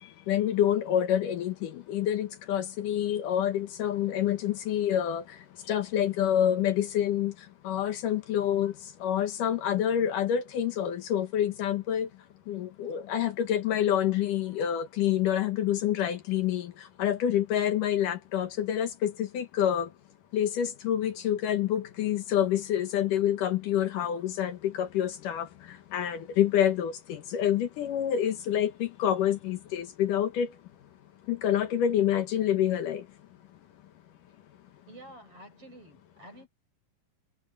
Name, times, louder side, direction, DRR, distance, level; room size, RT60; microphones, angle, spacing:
voice 1, 0.3-5.2 5.7-7.3 7.6-8.7 9.0-12.1 12.5-19.9 20.3-30.5 31.3-33.0, left 10 dB, 70° left, 2.7 m, -27 dB
voice 2, 34.9-36.5, right 1 dB, 40° right, 8.0 m, -49 dB
omnidirectional pair, 3.9 m